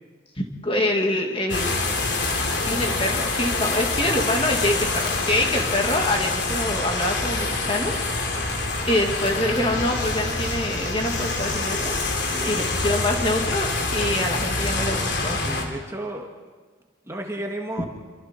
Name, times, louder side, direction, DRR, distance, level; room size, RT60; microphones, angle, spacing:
voice 1, 0.4-1.7 2.7-7.9 8.9-11.9 12.4-15.4 17.8-17.9, left 1 dB, 30° left, 2 dB, 2.2 m, -25 dB
sound 1, 1.5-15.6, left 3 dB, 65° left, 3.3 m, -26 dB
voice 2, 12.3-12.8 15.4-16.3 17.1-17.9, right 1 dB, 15° right, 1 dB, 1.9 m, -33 dB
28.0 x 24.0 x 4.5 m, 1.4 s
head